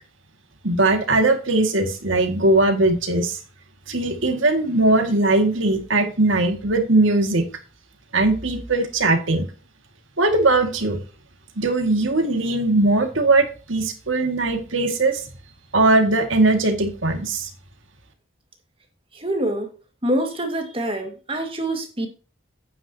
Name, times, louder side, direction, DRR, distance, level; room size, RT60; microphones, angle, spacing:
voice 1, 0.6-3.4 3.9-7.4 8.1-9.5 10.2-11.0 11.6-15.2 15.7-17.5, right 2 dB, 85° right, 5 dB, 2.3 m, -20 dB
voice 2, 19.2-19.7 20.0-22.1, right 1 dB, 30° right, 4 dB, 2.1 m, -25 dB
9.5 x 9.2 x 3.0 m, 0.35 s
head